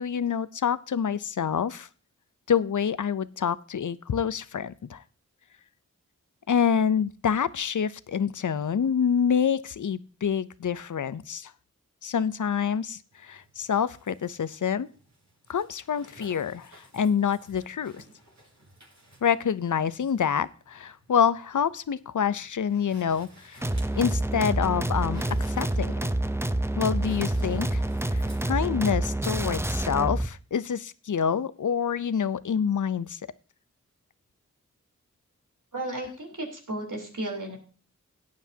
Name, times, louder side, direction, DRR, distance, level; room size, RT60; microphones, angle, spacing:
voice 1, 0.0-1.9 2.5-5.0 6.5-11.5 12.0-14.9 15.5-18.0 19.2-23.6 24.0-25.2 25.5-25.9 26.8-27.8 28.1-33.2, left 7 dB, 70° left, 17 dB, 0.6 m, -27 dB
sound 1, 13.1-28.5, right 1 dB, 60° right, 4.8 m, -51 dB
sound 2, 23.6-30.3, right 1 dB, 10° right, 0.6 m, -27 dB
voice 2, 35.7-37.6, right 1 dB, 80° right, 1 dB, 3.6 m, -34 dB
16.5 x 9.6 x 2.8 m, 0.38 s
wide cardioid pair, 50°, 31 cm